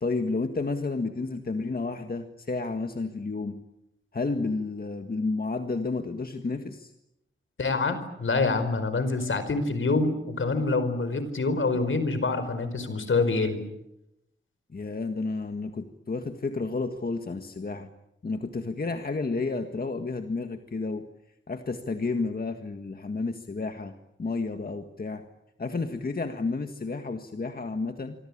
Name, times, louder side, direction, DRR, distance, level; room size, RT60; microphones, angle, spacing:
voice 1, 0.0-3.6 4.1-6.9 14.7-17.9 18.2-21.1 21.5-23.9 24.2-25.3 25.6-28.2, left 3 dB, 45° left, 6 dB, 1.7 m, -31 dB
voice 2, 7.6-13.6, left 3 dB, 70° left, 11 dB, 4.9 m, -26 dB
26.0 x 25.5 x 8.7 m, 0.86 s
wide cardioid pair, 95°, 21 cm